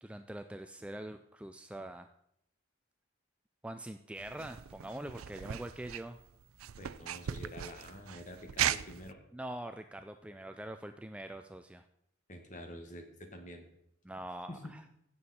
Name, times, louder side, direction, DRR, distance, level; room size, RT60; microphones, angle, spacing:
voice 1, 0.0-2.1 3.6-6.2 9.3-11.8 14.0-14.8, right 1 dB, 5° right, 8 dB, 0.3 m, -44 dB
sound 1, 4.2-9.1, right 10 dB, 85° right, 0.4 m, -38 dB
voice 2, 6.8-9.2 12.3-13.6 14.5-14.7, equal, 35° left, 4 dB, 1.7 m, -47 dB
16.0 x 7.1 x 4.3 m, 0.75 s
head